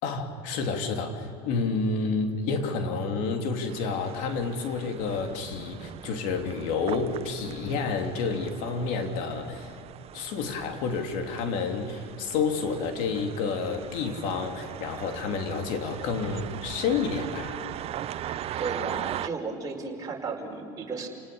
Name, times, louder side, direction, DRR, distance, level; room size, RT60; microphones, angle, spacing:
voice 1, 0.0-9.7 10.1-17.6, left 4 dB, 65° left, 4 dB, 3.0 m, -29 dB
sound 1, 3.7-19.3, right 12 dB, 45° right, 0.7 m, -40 dB
voice 2, 18.6-21.1, right 4 dB, 25° right, -1 dB, 5.1 m, -34 dB
29.0 x 19.0 x 7.0 m, 2.8 s
supercardioid pair, 90°, 14 cm